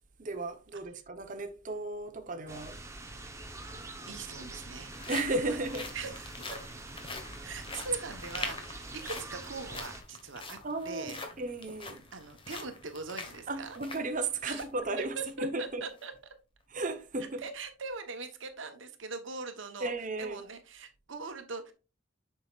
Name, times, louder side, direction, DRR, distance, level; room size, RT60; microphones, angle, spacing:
voice 1, 0.2-2.8 5.1-5.9 10.6-12.1 13.5-15.8 16.7-17.4 19.8-20.4, right 2 dB, 40° right, 0.9 m, -35 dB
sound 1, 2.5-10.0, right 2 dB, 15° right, 0.9 m, -45 dB
sound 2, 3.2-3.3 4.2-14.8 15.2-15.3 15.8-16.1, left 3 dB, 25° left, 1.3 m, -44 dB
voice 2, 4.1-5.1 5.5-6.4 7.4-10.6 10.8-11.2 12.1-13.8 14.4-14.6 14.9-16.1 17.4-19.9 20.2-21.7, right 4 dB, 70° right, 1.1 m, -41 dB
7.5 x 5.8 x 2.4 m
head